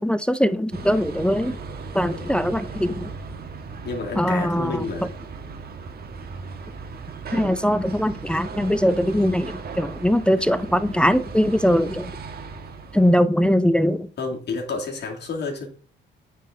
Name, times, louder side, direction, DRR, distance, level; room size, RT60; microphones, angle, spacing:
voice 1, 0.0-1.6 1.9-3.1 4.2-4.9 7.3-12.1 12.9-14.1, equal, 5° left, 12 dB, 0.5 m, -21 dB
sound 1, 0.7-13.2, right 4 dB, 50° right, 1.3 m, -37 dB
voice 2, 2.1-2.5 3.8-5.1 9.1-9.3 14.2-15.7, left 4 dB, 60° left, 0 dB, 2.6 m, -30 dB
9.1 x 4.1 x 3.8 m, 0.43 s
cardioid pair, 90°, 20 cm